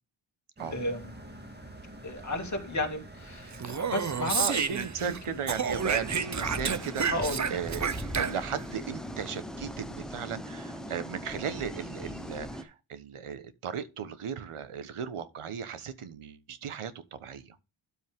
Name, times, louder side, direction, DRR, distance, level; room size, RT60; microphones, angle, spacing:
sound 1, 0.6-6.3, right 1 dB, 20° right, 2.0 m, -47 dB
voice 1, 0.7-1.1 2.0-5.4 6.4-6.6 7.1-7.5, left 1 dB, 35° left, 2.4 m, -34 dB
Speech, 3.5-5.2 5.5-8.6, right 6 dB, 35° right, 0.7 m, -30 dB
voice 2, 4.4-7.0 7.5-17.5, right 7 dB, 85° right, 1.3 m, -36 dB
sound 2, 5.7-12.6, equal, ahead, 1.1 m, -39 dB
12.5 x 5.4 x 3.6 m
wide cardioid pair, 160°, 49 cm